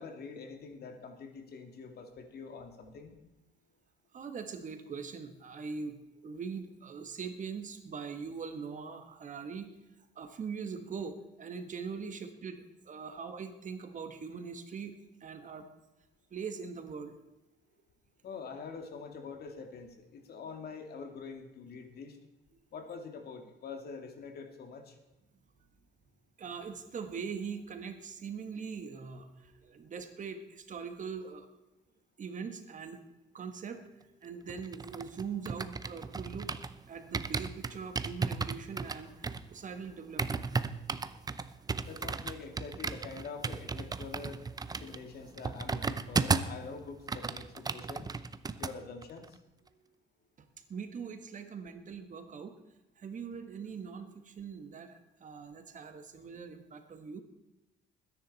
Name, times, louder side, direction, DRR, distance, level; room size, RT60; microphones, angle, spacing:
voice 1, 0.0-3.1 18.2-22.2 22.7-25.0 41.9-44.4 44.7-48.1 48.6-49.4, left 5 dB, 60° left, 5 dB, 2.4 m, -45 dB
voice 2, 4.1-6.0 6.2-9.7 10.1-15.7 16.3-17.1 26.4-31.5 32.2-33.0 33.3-36.5 36.9-40.6 50.7-52.6 53.0-57.2, right 5 dB, 45° right, 7 dB, 1.7 m, -42 dB
sound 1, 34.5-36.8 37.1-46.6 46.9-48.7 49.0-49.3, right 4 dB, 20° right, 0.6 m, -35 dB
20.5 x 10.5 x 4.2 m, 0.98 s
cardioid pair, 120°, 18 cm